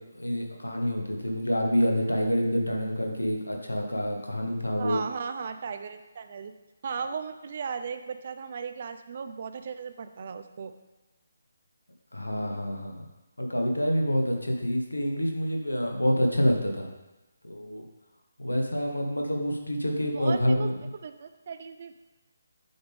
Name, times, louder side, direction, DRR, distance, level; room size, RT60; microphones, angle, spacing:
voice 1, 0.0-5.0 12.1-13.1 13.4-16.9 17.4-17.8 18.4-20.7, equal, 85° left, 2 dB, 1.1 m, -27 dB
voice 2, 4.8-6.5 6.8-10.7 20.1-22.0, right 6 dB, 45° right, 9 dB, 0.4 m, -36 dB
7.7 x 3.6 x 3.5 m, 1.1 s
figure-of-eight pair, 150°, 0 cm